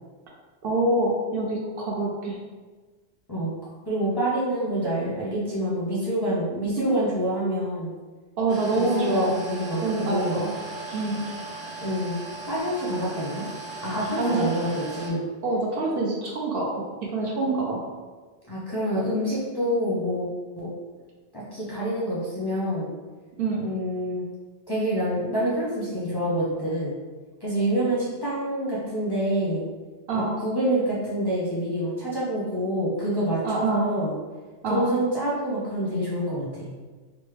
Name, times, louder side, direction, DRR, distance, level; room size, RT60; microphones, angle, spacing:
voice 1, 0.6-2.4 8.4-9.5 9.8-10.5 10.9-11.2 14.2-14.5 15.4-16.8 17.1-17.8 23.4-23.6 30.1-30.3 33.4-33.8 34.6-34.9, right 2 dB, 65° right, -2 dB, 0.7 m, -25 dB
voice 2, 3.9-7.9 8.7-10.4 11.8-12.1 12.5-13.5 13.8-15.2 18.4-20.3 20.5-20.7 21.3-22.9 23.6-24.2 24.7-27.0 27.4-29.6 30.1-34.1 34.7-36.7, equal, 25° left, -9 dB, 0.5 m, -27 dB
sound 1, 8.5-15.1, right 3 dB, 40° right, 1.1 m, -38 dB
3.3 x 2.0 x 3.2 m, 1.4 s
omnidirectional pair, 1.2 m